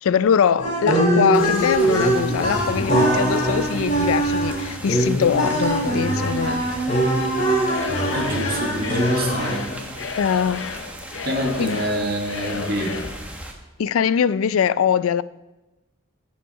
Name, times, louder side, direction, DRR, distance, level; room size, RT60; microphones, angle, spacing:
voice 1, 0.0-6.7 10.2-10.7 11.6-11.9 13.8-15.2, left 7 dB, 90° left, 0.4 m, -22 dB
sound 1, 0.6-9.8, right 1 dB, 35° left, 2.8 m, -22 dB
sound 2, 1.3-13.5, right 1 dB, 5° right, 1.2 m, -38 dB
Singing / Crowd, 7.6-13.2, left 5 dB, 70° left, 0.8 m, -32 dB
voice 2, 8.1-9.6 11.2-13.0, right 1 dB, 50° right, 1.9 m, -26 dB
14.5 x 5.6 x 5.3 m
head